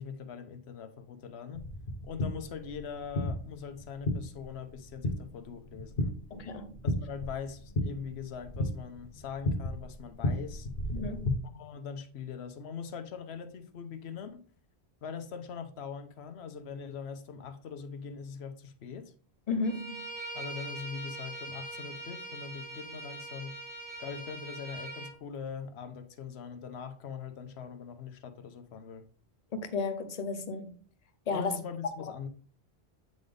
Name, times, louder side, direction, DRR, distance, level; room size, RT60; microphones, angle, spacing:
voice 1, 0.0-1.6 2.0-6.1 6.8-10.7 11.5-14.4 15.0-19.1 20.3-23.6 24.0-29.1 31.3-32.3, left 6 dB, 80° left, 1.0 m, -42 dB
sound 1, 1.5-11.3, left 1 dB, 60° left, 1.4 m, -35 dB
voice 2, 6.3-6.7 10.9-11.3 19.5-20.1 29.5-30.8 31.3-31.6, left 4 dB, 40° left, 0.8 m, -33 dB
Bowed string instrument, 19.6-25.1, right 2 dB, 80° right, 2.1 m, -42 dB
8.3 x 4.0 x 3.3 m
omnidirectional pair, 1.1 m